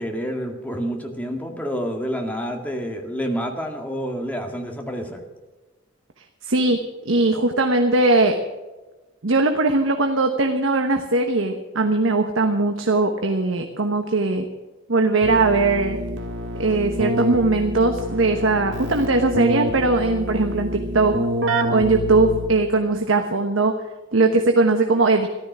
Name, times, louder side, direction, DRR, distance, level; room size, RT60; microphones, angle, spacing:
voice 1, 0.0-5.2, equal, 10° left, 2 dB, 2.0 m, -28 dB
voice 2, 6.4-8.4 9.2-14.5 14.9-16.0 16.6-21.2 21.7-23.7 24.1-25.3, right 2 dB, 90° right, 5 dB, 1.1 m, -20 dB
Keyboard (musical), 15.2-22.8, right 1 dB, 70° right, 1.8 m, -27 dB
14.0 x 12.5 x 6.1 m, 1.2 s
head